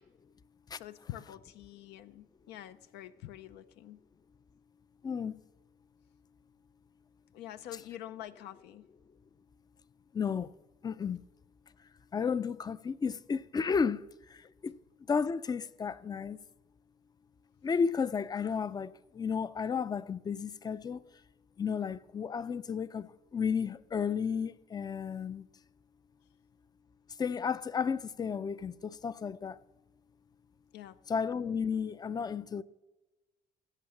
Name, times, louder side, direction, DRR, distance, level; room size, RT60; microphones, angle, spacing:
voice 1, 0.7-4.0 7.3-8.9 30.7-31.0, left 13 dB, 80° left, 0.5 m, -46 dB
voice 2, 5.0-5.3 10.1-10.5 10.8-11.2 12.1-14.0 14.3-14.8 15.1-16.4 17.6-21.0 21.6-25.5 27.2-29.6 31.1-32.6, left 6 dB, 25° left, 0.4 m, -33 dB
15.5 x 5.7 x 7.2 m
cardioid pair, 110°, 17 cm